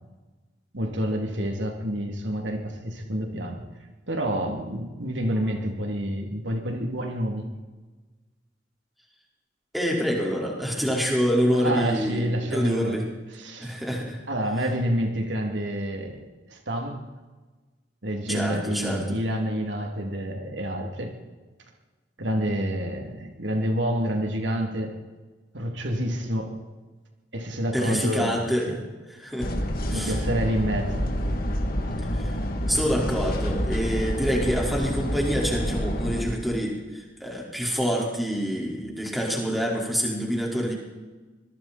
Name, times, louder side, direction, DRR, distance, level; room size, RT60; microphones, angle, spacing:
voice 1, 0.7-3.6 4.1-7.5 11.5-13.1 13.3-13.7 14.3-17.0 18.0-21.1 22.2-25.0 25.5-26.6 27.3-28.8 29.9-31.1, equal, 80° right, 2 dB, 3.2 m, -28 dB
voice 2, 9.7-13.0 13.6-14.2 18.3-19.2 27.7-28.8 29.2-29.5 29.9-30.1 32.1-32.3 32.7-40.7, equal, ahead, -3 dB, 5.1 m, -26 dB
sound 1, 29.4-36.3, equal, 55° left, 2.8 m, -28 dB
26.0 x 22.0 x 4.5 m, 1.3 s
head